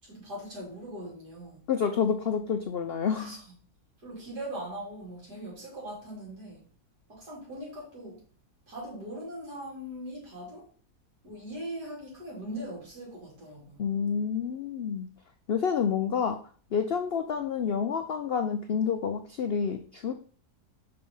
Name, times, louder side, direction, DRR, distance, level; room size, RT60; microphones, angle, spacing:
voice 1, 0.0-1.6 3.2-3.6 4.0-6.6 7.1-8.2 8.7-10.7 11.2-13.8, right 1 dB, 75° right, 3.8 m, -40 dB
voice 2, 1.7-3.4 13.8-15.1 15.5-16.4 16.7-20.1, left 7 dB, 70° left, 0.5 m, -28 dB
5.8 x 4.3 x 5.4 m
omnidirectional pair, 1.7 m